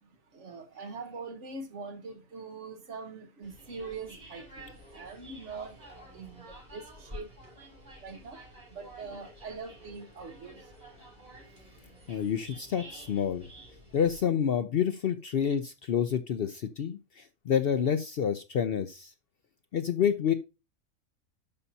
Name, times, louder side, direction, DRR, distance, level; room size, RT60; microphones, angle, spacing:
voice 1, 0.0-7.3 8.0-10.7 11.7-12.0, right 4 dB, 60° right, 1.4 m, -43 dB
sound 1, 3.4-14.2, right 1 dB, 30° right, 3.1 m, -50 dB
voice 2, 12.1-13.5 13.9-19.1 19.7-20.3, left 8 dB, 60° left, 0.6 m, -28 dB
12.0 x 5.5 x 2.7 m
omnidirectional pair, 1.4 m